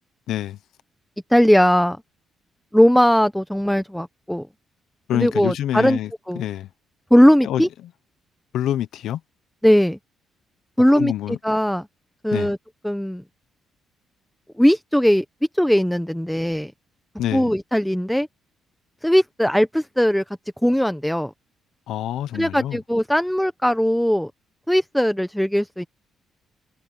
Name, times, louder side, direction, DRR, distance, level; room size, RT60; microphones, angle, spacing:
voice 1, 0.3-0.6 5.1-6.1 6.3-6.7 7.4-7.6 8.5-9.2 10.9-11.4 12.3-12.5 17.2-17.5 21.9-22.8, left 12 dB, 80° left, 0.8 m, -26 dB
voice 2, 1.3-2.0 2.7-4.5 5.1-6.0 6.3-6.4 7.1-7.7 9.6-10.0 10.8-11.9 12.2-12.6 12.8-13.2 14.6-15.2 15.5-16.7 17.3-18.3 19.0-20.2 20.6-21.3 22.3-24.3 24.7-25.9, equal, ahead, 0.9 m, -19 dB
cardioid pair, 90°, 0 cm